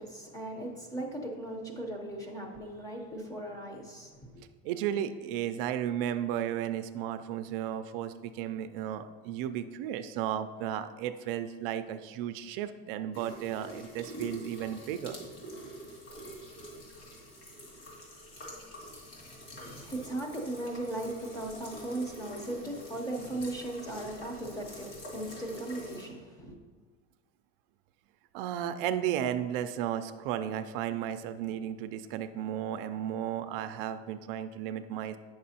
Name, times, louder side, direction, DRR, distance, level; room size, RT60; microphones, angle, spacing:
voice 1, 0.0-4.4 19.5-26.6, right 1 dB, 10° left, 2 dB, 0.7 m, -38 dB
voice 2, 4.6-15.2 28.3-35.2, right 10 dB, 70° right, 10 dB, 0.4 m, -34 dB
sound 1, 13.1-26.1, equal, 50° left, 2.1 m, -46 dB
8.4 x 6.0 x 2.8 m, 1.4 s
cardioid pair, 160°, 29 cm